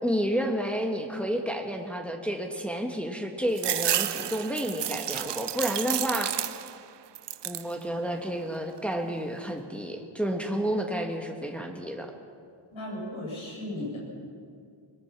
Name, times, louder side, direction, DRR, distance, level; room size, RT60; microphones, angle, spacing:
voice 1, 0.0-6.3 7.4-12.1, equal, ahead, 2 dB, 1.4 m, -30 dB
sound 1, 3.6-6.8 7.1-7.7 8.2-8.9, right 11 dB, 60° right, 0.6 m, -31 dB
voice 2, 12.7-14.0, left 1 dB, 75° left, -4 dB, 7.7 m, -35 dB
22.0 x 21.0 x 6.0 m, 2.3 s
wide cardioid pair, 135°, 49 cm